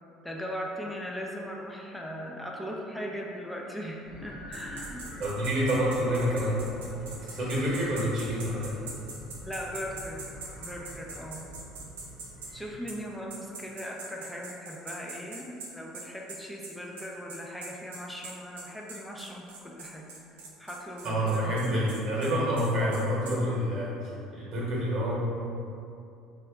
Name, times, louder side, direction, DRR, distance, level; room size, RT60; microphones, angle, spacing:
voice 1, 0.2-5.1 9.4-10.2 10.6-11.5 12.5-21.6, equal, 5° left, -2 dB, 0.4 m, -39 dB
sound 1, 4.0-12.8, left 1 dB, 50° left, 0.9 m, -45 dB
sound 2, 4.5-12.5 12.9-13.0 13.3-23.4, right 3 dB, 80° right, 0.4 m, -43 dB
voice 2, 5.2-6.6 7.3-8.7 21.0-23.9 24.3-25.1, equal, 40° right, -7 dB, 0.9 m, -27 dB
2.7 x 2.2 x 3.4 m, 2.6 s
hypercardioid pair, 60°, 0 cm